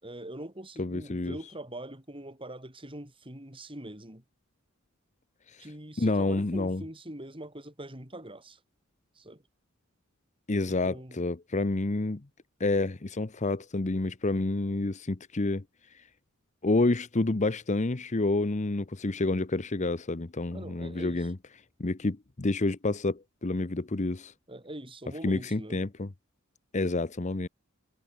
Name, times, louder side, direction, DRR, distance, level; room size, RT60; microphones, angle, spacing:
voice 1, 0.0-4.2 5.6-8.6 9.2-9.4 10.6-11.2 20.5-21.3 24.5-25.8, right 1 dB, 25° right, 7.6 m, -43 dB
voice 2, 0.8-1.4 5.5-5.6 6.0-6.8 10.5-12.2 12.6-15.6 16.6-21.4 21.8-24.3 25.2-26.1 26.7-27.5, left 2 dB, 35° left, 0.8 m, -29 dB
head